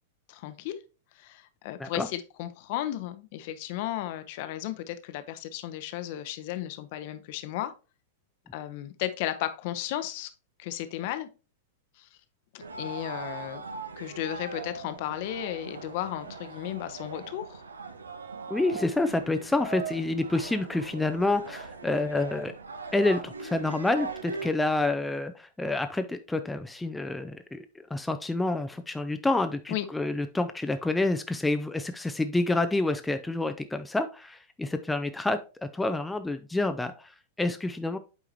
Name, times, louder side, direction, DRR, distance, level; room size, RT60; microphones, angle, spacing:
voice 1, 0.3-0.8 1.2-7.7 8.5-10.3 10.6-11.3 12.0-12.1 12.5-13.6 14.0-17.6 29.7-29.9, left 13 dB, 45° left, 11 dB, 0.7 m, -34 dB
sound 1, 12.6-24.5, right 4 dB, 75° right, 0.7 m, -40 dB
voice 2, 18.5-22.5 22.9-27.7 27.9-38.0, left 2 dB, 5° left, 8 dB, 0.5 m, -28 dB
8.2 x 4.8 x 2.8 m, 0.32 s
figure-of-eight pair, 95°, 0 cm